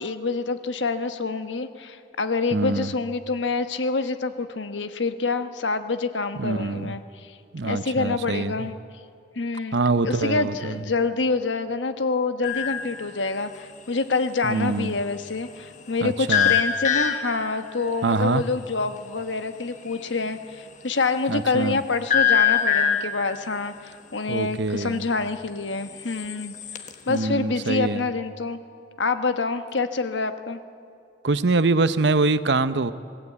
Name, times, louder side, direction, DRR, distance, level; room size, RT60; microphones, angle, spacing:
voice 1, 0.0-7.4 7.6-8.7 9.3-9.8 10.0-26.6 27.1-28.6 29.0-30.6, left 3 dB, 85° left, 9 dB, 1.2 m, -27 dB
voice 2, 2.5-2.9 6.4-6.9 7.5-8.7 9.7-10.8 14.4-15.0 16.0-16.6 18.0-18.4 21.3-21.8 24.3-25.0 27.1-28.1 31.2-32.9, right 3 dB, 70° right, 13 dB, 0.8 m, -24 dB
sound 1, 12.4-12.9 16.3-17.5 22.1-23.3 26.0-26.9, left 8 dB, 40° left, 1.3 m, -22 dB
25.5 x 19.0 x 8.4 m, 2.5 s
head